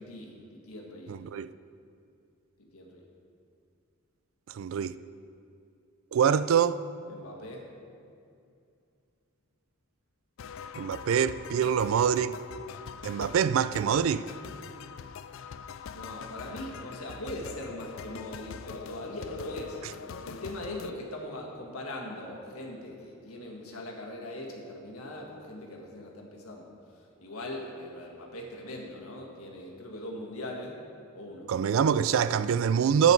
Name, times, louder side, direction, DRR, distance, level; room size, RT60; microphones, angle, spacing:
voice 1, 0.0-1.2 2.7-3.0 7.1-7.6 15.9-19.8 20.2-26.7 27.2-30.8 31.1-31.5, left 1 dB, 85° left, 1.6 m, -40 dB
voice 2, 1.1-1.5 4.5-4.9 6.1-6.8 10.8-12.3 13.0-14.3 31.5-33.1, right 7 dB, 65° right, 0.3 m, -25 dB
sound 1, 10.4-20.9, left 6 dB, 60° left, 0.3 m, -43 dB
10.5 x 8.1 x 4.5 m
head